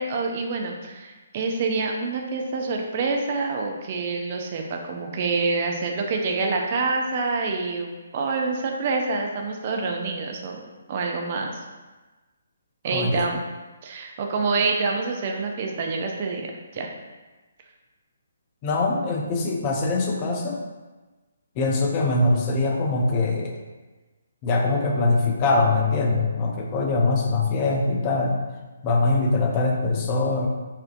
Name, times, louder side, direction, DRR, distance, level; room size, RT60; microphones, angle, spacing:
voice 1, 0.0-11.6 12.8-13.4 13.8-16.5 16.7-16.9, right 4 dB, 40° right, 2 dB, 0.5 m, -27 dB
voice 2, 12.9-13.3 18.6-20.6 21.6-23.6 24.4-28.4 28.8-30.5, left 3 dB, 30° left, 1 dB, 0.5 m, -23 dB
4.2 x 2.5 x 2.5 m, 1.2 s
figure-of-eight pair, 140°, 0 cm